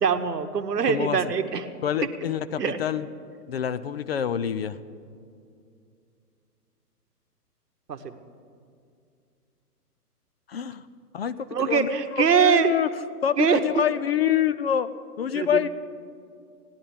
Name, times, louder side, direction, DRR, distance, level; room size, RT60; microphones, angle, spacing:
voice 1, 0.0-1.7 2.6-2.8 7.9-8.1 11.5-12.7 13.4-13.6 15.3-15.6, right 7 dB, 80° right, 8 dB, 1.2 m, -23 dB
voice 2, 0.9-1.2 1.8-3.1 3.5-4.8 10.5-10.8 11.1-12.9 13.2-14.9 15.2-15.7, left 9 dB, 40° left, 13 dB, 0.4 m, -26 dB
16.0 x 10.5 x 7.1 m, 2.4 s
hypercardioid pair, 130°, 47 cm